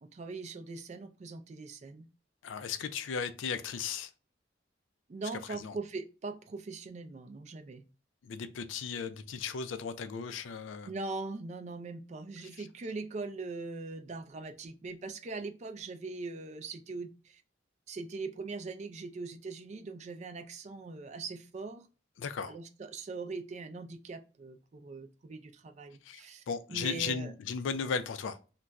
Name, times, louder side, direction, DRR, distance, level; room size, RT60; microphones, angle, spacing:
voice 1, 0.0-2.1 5.1-7.8 10.9-17.4 17.9-21.9 22.4-26.4 26.7-27.3, right 3 dB, 35° right, 0.3 m, -41 dB
voice 2, 2.4-4.1 5.5-5.8 8.2-10.9 12.6-12.7 22.2-22.6 26.0-26.2 26.5-28.4, left 6 dB, 75° left, 0.4 m, -36 dB
2.3 x 2.2 x 3.9 m
head